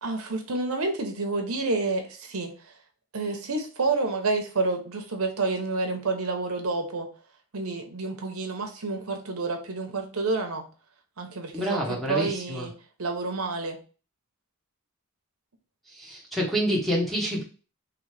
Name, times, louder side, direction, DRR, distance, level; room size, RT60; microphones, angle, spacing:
voice 1, 0.0-2.5 3.1-7.1 7.5-10.7 11.2-12.7 13.0-13.8, right 3 dB, 85° right, 4 dB, 0.9 m, -29 dB
voice 2, 11.5-12.7 15.9-17.4, equal, ahead, -2 dB, 1.2 m, -28 dB
3.9 x 3.1 x 3.3 m, 0.36 s
head